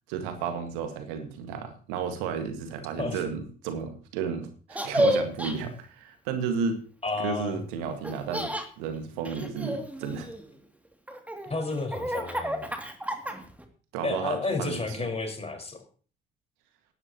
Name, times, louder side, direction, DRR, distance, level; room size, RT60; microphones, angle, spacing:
voice 1, 0.1-6.8 7.2-8.5 8.8-10.3 13.9-15.0, right 6 dB, 65° right, 8 dB, 1.9 m, -33 dB
Laughter, 4.7-5.5 8.0-8.7 9.2-10.5 11.1-13.6, equal, 5° right, 2.5 m, -30 dB
voice 2, 7.0-7.6 11.4-12.7 14.0-15.8, left 3 dB, 20° left, 4 dB, 4.8 m, -31 dB
18.5 x 12.0 x 2.9 m, 0.39 s
figure-of-eight pair, 45°, 29 cm